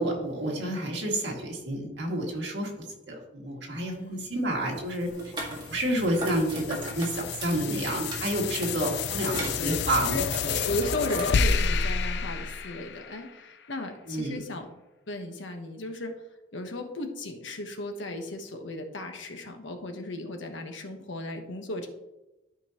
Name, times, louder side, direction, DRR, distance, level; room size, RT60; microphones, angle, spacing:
voice 1, 0.0-5.1 5.7-10.7 14.1-14.4, right 1 dB, 65° right, -1 dB, 2.1 m, -30 dB
voice 2, 4.0-4.4 9.2-10.2 10.6-14.7 15.1-16.1 16.5-21.9, left 2 dB, 80° left, 4 dB, 1.2 m, -35 dB
sound 1, 4.9-13.5, left 5 dB, 60° left, 0.4 m, -30 dB
sound 2, 5.1-11.2, right 1 dB, 25° right, 1.9 m, -40 dB
12.5 x 5.3 x 3.0 m, 0.98 s
head